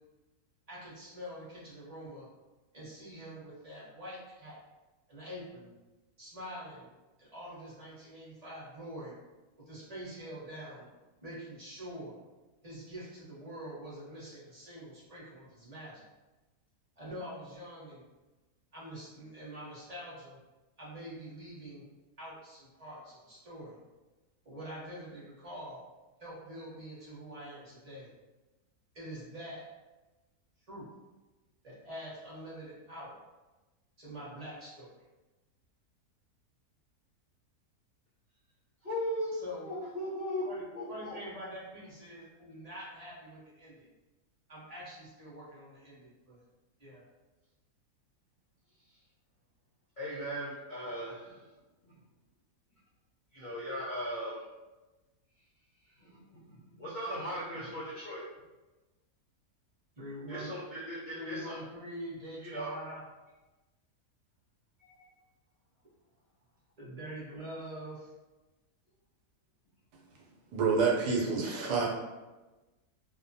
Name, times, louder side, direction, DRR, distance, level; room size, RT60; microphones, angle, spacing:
voice 1, 0.7-2.3 2.7-4.6 5.1-5.7 6.2-6.9 7.2-9.1 9.7-10.9 11.2-12.1 12.6-16.0 17.0-18.0 18.7-20.4 20.8-21.8 22.2-23.8 24.4-25.8 26.2-28.1 28.9-29.6 30.7-30.9 31.6-33.2 34.0-34.9 39.3-39.7 40.4-40.6 40.9-43.9 44.5-46.4 46.8-47.0 60.0-60.5 61.1-63.0 66.8-68.1 71.3-71.8, equal, 30° right, -8 dB, 0.9 m, -45 dB
voice 2, 38.8-39.4 39.6-40.5 40.7-41.2 50.0-51.4 51.8-51.9 53.3-54.4 56.0-58.2 60.3-61.6 62.4-62.7 65.0-65.1, equal, 45° left, -10 dB, 0.6 m, -38 dB
voice 3, 70.5-71.9, right 5 dB, 80° right, -3 dB, 1.2 m, -28 dB
2.8 x 2.2 x 2.6 m, 1.1 s
omnidirectional pair, 1.7 m